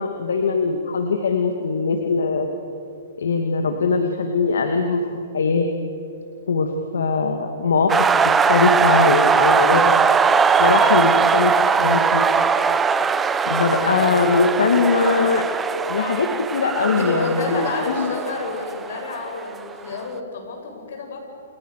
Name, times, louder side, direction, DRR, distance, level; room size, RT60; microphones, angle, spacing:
voice 1, 0.0-2.5 3.2-5.7 6.5-10.0 10.6-12.2 13.5-15.4 15.9-16.3 16.5-18.1, left 4 dB, 80° left, 5 dB, 2.6 m, -21 dB
sound 1, 7.9-19.6, right 5 dB, 10° right, 1.0 m, -20 dB
voice 2, 16.8-21.2, left 3 dB, 65° left, 3 dB, 7.8 m, -29 dB
30.0 x 29.0 x 6.8 m, 2.8 s
hypercardioid pair, 140°, 0 cm